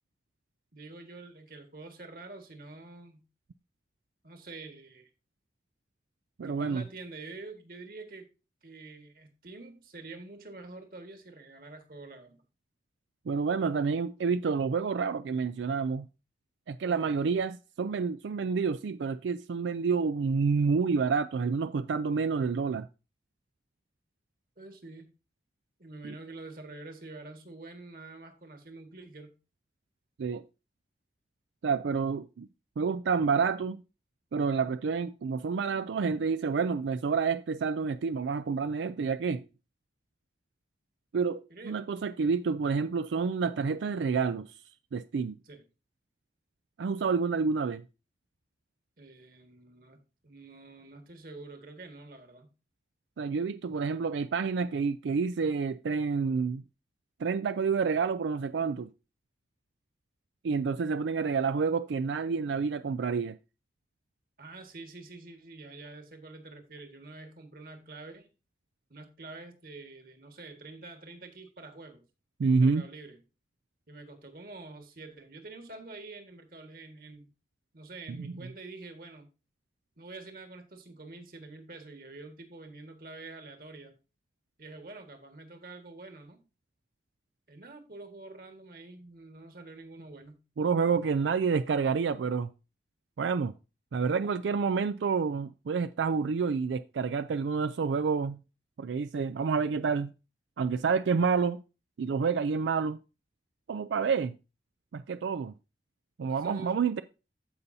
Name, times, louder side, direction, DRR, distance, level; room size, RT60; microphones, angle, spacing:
voice 1, 0.7-3.2 4.2-5.1 6.4-8.3 8.6-12.4 16.9-17.1 24.6-25.1 25.8-29.3 41.5-41.8 45.4-45.6 49.0-52.5 64.4-68.3 68.9-72.0 72.4-73.2 73.9-77.3 77.7-79.3 80.0-84.0 84.6-86.4 87.5-90.4 106.3-106.8, right 3 dB, 50° right, 1.7 m, -47 dB
voice 2, 6.4-6.8 13.3-16.1 16.7-22.9 26.0-26.2 30.2-30.4 31.6-32.5 32.8-33.8 34.3-39.4 41.1-44.5 44.9-45.4 46.8-47.8 53.2-56.6 57.2-58.9 60.4-63.4 72.4-72.8 78.1-78.3 90.6-92.5 93.2-93.5 93.9-98.4 98.8-100.1 100.6-101.6 102.0-103.0 103.7-104.4 104.9-105.5 106.2-107.0, right 5 dB, 90° right, 0.4 m, -29 dB
15.0 x 5.4 x 2.7 m
head